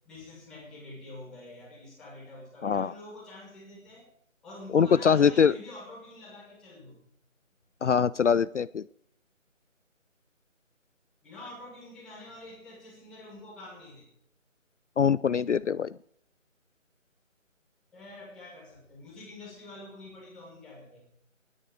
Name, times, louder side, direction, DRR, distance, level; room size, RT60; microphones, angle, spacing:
voice 1, 0.0-4.1 4.4-7.0 11.2-14.1 17.9-21.0, left 1 dB, ahead, -8 dB, 1.6 m, -46 dB
voice 2, 4.7-5.5 7.8-8.8 15.0-15.9, left 7 dB, 65° left, 18 dB, 0.5 m, -23 dB
19.0 x 10.0 x 4.9 m, 0.70 s
figure-of-eight pair, 170°, 39 cm